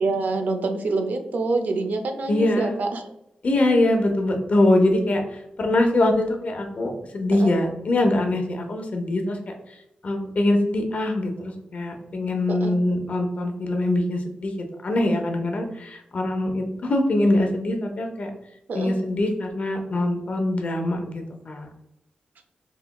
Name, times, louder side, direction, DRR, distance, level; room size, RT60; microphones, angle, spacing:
voice 1, 0.0-3.1 7.3-7.5 12.5-12.7 18.7-19.0, right 3 dB, 75° right, 5 dB, 0.5 m, -26 dB
voice 2, 2.3-2.7 3.4-5.2 5.6-9.4 10.0-14.5 14.8-18.3 18.7-21.7, left 1 dB, 55° left, 3 dB, 0.7 m, -23 dB
4.0 x 2.9 x 2.2 m, 0.84 s
wide cardioid pair, 85°, 3 cm